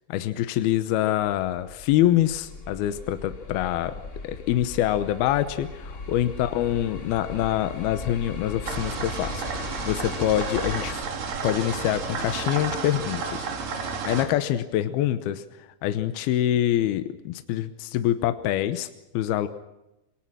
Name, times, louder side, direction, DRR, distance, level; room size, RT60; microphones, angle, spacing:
voice 1, 0.1-3.9 4.2-11.0 11.4-13.5 14.1-15.4 15.8-18.9 19.1-19.5, left 12 dB, 75° left, 10 dB, 2.4 m, -25 dB
sound 1, 1.2-10.9, left 3 dB, 20° left, 2.1 m, -38 dB
sound 2, 8.7-14.2, right 5 dB, 50° right, 3.9 m, -32 dB
26.5 x 23.0 x 6.2 m, 0.94 s
omnidirectional pair, 5.4 m